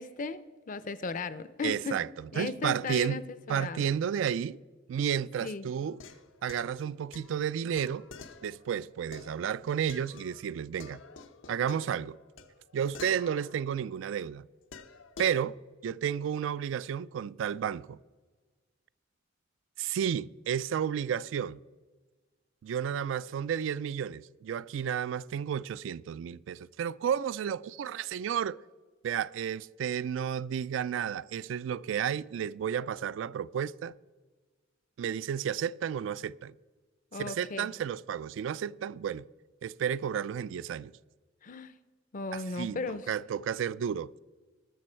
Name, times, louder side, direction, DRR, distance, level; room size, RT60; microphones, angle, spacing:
voice 1, 0.0-2.0 2.3-3.2 3.5-3.9 5.4-5.7 37.1-37.7 41.4-41.7 42.1-43.1, left 4 dB, 45° left, 0.5 m, -36 dB
voice 2, 1.6-3.2 3.5-4.6 4.9-6.0 6.4-8.1 8.4-11.0 11.5-12.2 12.7-14.5 15.2-15.6 15.8-18.0 19.8-21.6 22.6-28.6 29.0-33.9 35.0-36.5 37.1-39.2 39.6-40.9 42.3-44.2, right 8 dB, 75° right, 0.3 m, -32 dB
sound 1, 5.9-10.5 10.8-14.1 14.7-15.4, left 4 dB, 85° left, 0.8 m, -49 dB
18.5 x 6.8 x 4.4 m
head